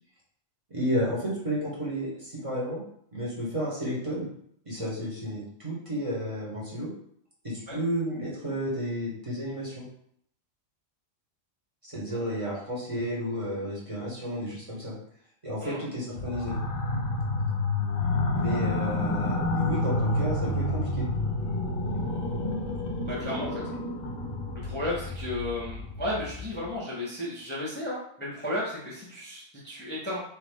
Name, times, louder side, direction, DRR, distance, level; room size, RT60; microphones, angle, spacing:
voice 1, 0.7-2.8 3.1-4.3 4.6-6.9 7.4-9.8 11.8-14.9 15.4-16.6 18.3-21.1, equal, 30° right, -6 dB, 0.9 m, -32 dB
sound 1, 16.2-26.7, left 2 dB, 50° left, 0.7 m, -29 dB
voice 2, 23.1-23.6 24.5-30.2, left 1 dB, 10° left, -6 dB, 0.6 m, -34 dB
3.0 x 2.5 x 3.4 m, 0.67 s
omnidirectional pair, 1.1 m